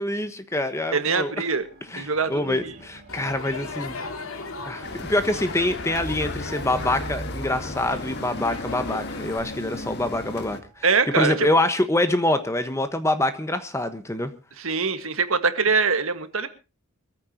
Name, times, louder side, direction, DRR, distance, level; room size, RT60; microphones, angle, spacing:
voice 1, 0.0-1.3 1.9-4.0 4.7-10.9 11.1-14.3, left 1 dB, 15° left, 10 dB, 1.2 m, -25 dB
voice 2, 0.9-1.7 1.9-2.7 10.8-11.3 14.6-16.5, right 4 dB, 70° right, 10 dB, 1.6 m, -23 dB
sound 1, 1.3-10.8 11.6-11.8, right 2 dB, 45° right, 4.7 m, -43 dB
Crowd, 3.1-9.4, left 3 dB, 70° left, 2.2 m, -37 dB
sound 2, 4.8-10.6, left 2 dB, 50° left, 1.7 m, -36 dB
23.5 x 14.5 x 2.9 m, 0.31 s
head